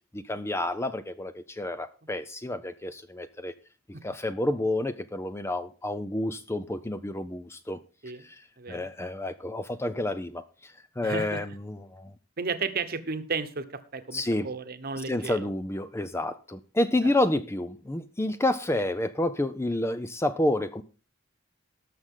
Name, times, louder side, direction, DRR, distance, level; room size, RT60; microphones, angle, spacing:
voice 1, 0.1-3.5 4.0-7.8 8.2-8.4 8.7-10.4 11.0-12.1 14.1-14.5 15.1-20.8, left 1 dB, 15° left, 0.5 m, -29 dB
voice 2, 8.6-8.9 11.0-11.4 12.4-15.5 17.0-17.1, right 4 dB, 50° right, 1.1 m, -33 dB
18.5 x 6.4 x 3.7 m
head